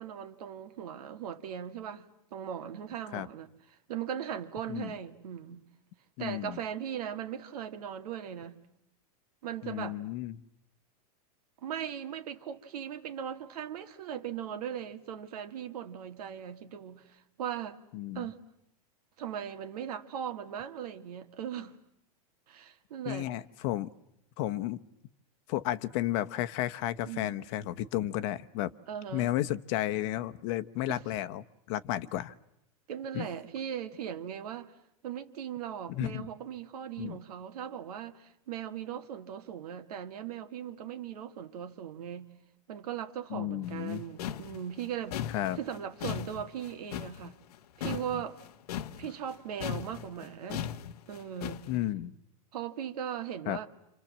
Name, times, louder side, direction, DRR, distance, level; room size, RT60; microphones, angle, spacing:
voice 1, 0.0-3.5 3.9-5.7 6.2-8.6 9.4-10.0 11.6-17.8 18.1-18.4 19.2-21.8 22.5-23.3 27.1-27.5 28.9-29.3 30.9-31.0 32.9-34.7 35.0-42.3 42.7-45.2 45.5-47.4 47.8-48.4 49.0-50.7 51.1-51.7 52.5-53.7, right 9 dB, 80° right, 2.2 m, -39 dB
voice 2, 6.2-6.6 9.6-10.4 17.9-18.3 23.1-23.9 24.4-24.8 25.5-28.7 29.1-32.3 33.1-33.3 35.9-36.2 37.0-37.2 43.3-44.0 45.3-45.6 51.7-52.1 53.5-53.6, left 14 dB, 50° left, 1.1 m, -33 dB
sound 1, 43.6-49.4 49.6-51.8, left 10 dB, 80° left, 1.1 m, -38 dB
27.5 x 27.5 x 7.4 m
supercardioid pair, 140°, 19 cm